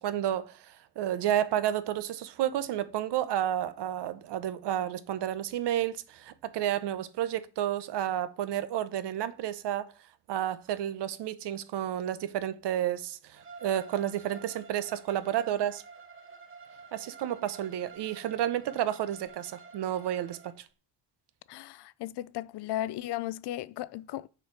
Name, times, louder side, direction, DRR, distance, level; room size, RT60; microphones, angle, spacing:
voice 1, 0.0-9.9 10.3-15.8 16.9-20.6, right 11 dB, 75° right, 0.9 m, -31 dB
Bowed string instrument, 13.3-20.5, right 4 dB, 30° right, 1.1 m, -50 dB
voice 2, 21.5-24.3, left 14 dB, 70° left, 0.5 m, -35 dB
6.6 x 4.5 x 4.9 m
cardioid pair, 145°, 41 cm